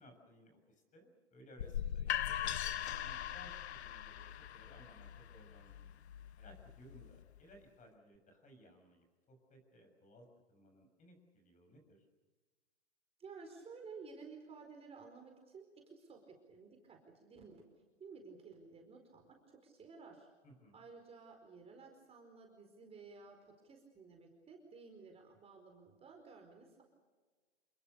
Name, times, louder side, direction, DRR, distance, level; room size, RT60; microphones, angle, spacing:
voice 1, 0.0-5.9 6.4-12.0 20.4-20.8, equal, 20° left, 5 dB, 7.0 m, -61 dB
sound 1, 1.6-7.4, left 10 dB, 70° left, 1.2 m, -41 dB
voice 2, 13.2-17.6 18.0-20.3 20.7-23.4 23.6-26.8, right 4 dB, 15° right, 2 dB, 4.6 m, -54 dB
28.5 x 21.5 x 6.9 m, 1.4 s
hypercardioid pair, 120°, 34 cm